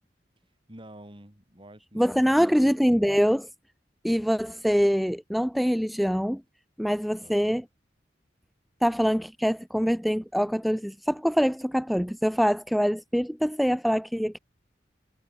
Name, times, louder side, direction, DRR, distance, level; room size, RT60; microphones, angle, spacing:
voice 1, 0.7-2.7 7.2-7.6, right 1 dB, 30° right, 8.0 m, -49 dB
voice 2, 1.9-3.5 4.0-6.4 6.8-7.6 8.8-14.4, equal, ahead, 0.9 m, -24 dB
head